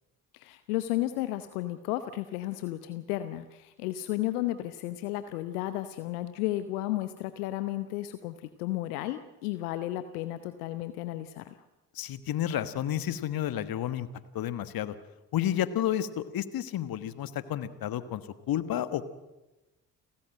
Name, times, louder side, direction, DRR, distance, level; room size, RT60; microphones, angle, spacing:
voice 1, 0.3-11.6, left 15 dB, 70° left, 12 dB, 1.0 m, -33 dB
voice 2, 11.9-14.1 14.3-15.0 15.3-19.1, left 11 dB, 50° left, 13 dB, 1.5 m, -31 dB
29.5 x 13.5 x 7.7 m, 1.1 s
figure-of-eight pair, 45°, 47 cm